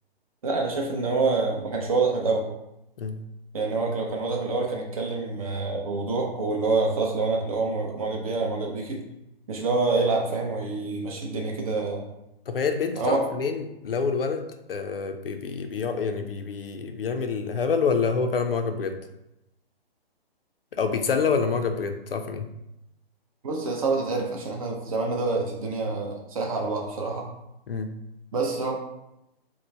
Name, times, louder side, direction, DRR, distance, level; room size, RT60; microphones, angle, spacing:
voice 1, 0.4-2.5 3.5-9.0 9.5-12.0 13.0-13.2 23.4-27.3 28.3-28.7, right 3 dB, 35° right, 1 dB, 0.6 m, -26 dB
voice 2, 12.5-19.0 20.7-22.5 27.7-27.9, left 5 dB, 65° left, 6 dB, 0.5 m, -27 dB
3.0 x 2.1 x 4.0 m, 0.88 s
figure-of-eight pair, 130°, 31 cm